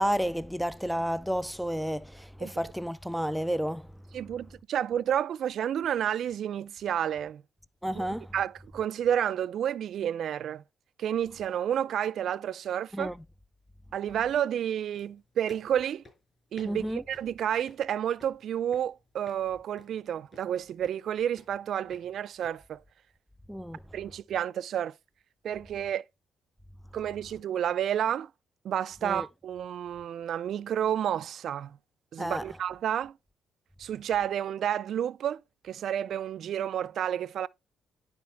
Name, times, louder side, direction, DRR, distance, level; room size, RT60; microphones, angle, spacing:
voice 1, 0.0-3.8 7.8-8.3 12.9-13.2 16.6-17.0 23.5-23.8 29.0-29.3 32.2-32.4, equal, ahead, 0.4 m, -31 dB
voice 2, 4.1-7.4 7.9-8.0 8.3-10.6 11.0-13.1 13.9-16.0 16.5-22.8 23.9-24.9 25.4-26.0 26.9-28.3 28.6-31.8 32.1-33.1 33.8-37.5, right 10 dB, 65° right, 0.4 m, -30 dB
sound 1, 14.9-22.5, left 2 dB, 30° left, 5.3 m, -58 dB
11.0 x 4.2 x 3.4 m
cardioid pair, 90°, 0 cm